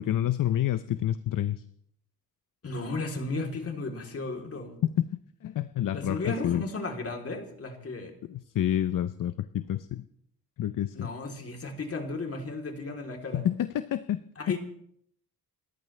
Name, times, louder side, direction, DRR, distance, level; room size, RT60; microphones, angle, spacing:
voice 1, 0.0-1.6 5.0-6.6 8.3-10.0 10.6-11.1 13.3-14.2 14.5-14.6, left 11 dB, 60° left, 13 dB, 0.7 m, -28 dB
voice 2, 2.6-4.8 5.9-8.1 10.9-13.4 14.4-14.6, left 3 dB, 40° left, 2 dB, 3.3 m, -34 dB
30.0 x 13.5 x 3.3 m, 0.69 s
cardioid pair, 115°, 36 cm